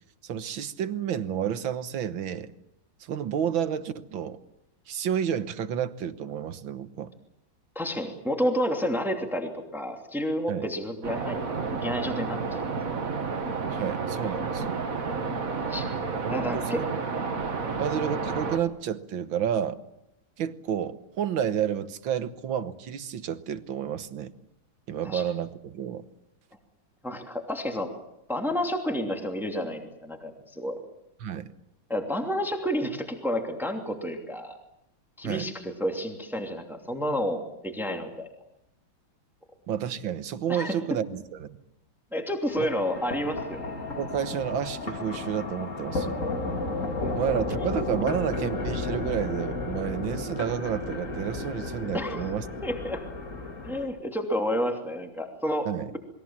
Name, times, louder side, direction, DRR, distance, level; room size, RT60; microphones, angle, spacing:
voice 1, 0.2-2.5 3.0-4.4 4.9-7.1 10.5-10.7 13.7-14.8 16.2-16.9 17.8-19.8 20.4-24.3 24.9-26.0 31.2-31.5 35.2-35.5 39.7-41.6 42.6-42.7 44.0-46.2 47.1-52.5 55.7-56.0, right 9 dB, 90° right, 11 dB, 2.0 m, -30 dB
voice 2, 7.7-12.8 15.6-15.9 16.3-16.8 17.6-17.7 25.0-25.2 27.0-27.9 28.3-30.8 31.9-34.6 35.2-38.3 40.5-40.8 42.1-43.7 47.0-47.1 51.9-52.3 52.6-53.0 53.6-55.7, equal, ahead, 3 dB, 2.7 m, -30 dB
sound 1, 11.0-18.6, right 4 dB, 45° right, 2.2 m, -31 dB
sound 2, 42.5-53.8, left 2 dB, 40° left, 3.0 m, -33 dB
28.5 x 22.0 x 7.4 m, 0.82 s
omnidirectional pair, 2.1 m